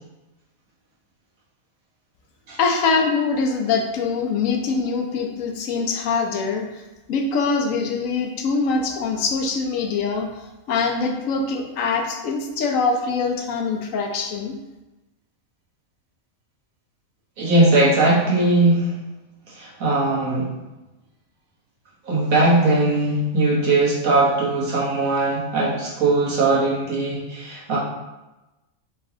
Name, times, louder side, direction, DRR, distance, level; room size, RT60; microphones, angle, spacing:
voice 1, 2.6-6.7 7.1-10.3 10.7-14.5, left 4 dB, 70° left, 3 dB, 1.0 m, -23 dB
voice 2, 17.4-18.9 19.5-20.5 22.0-27.8, right 2 dB, 75° right, -7 dB, 1.8 m, -19 dB
4.1 x 3.4 x 3.6 m, 1.0 s
omnidirectional pair, 1.4 m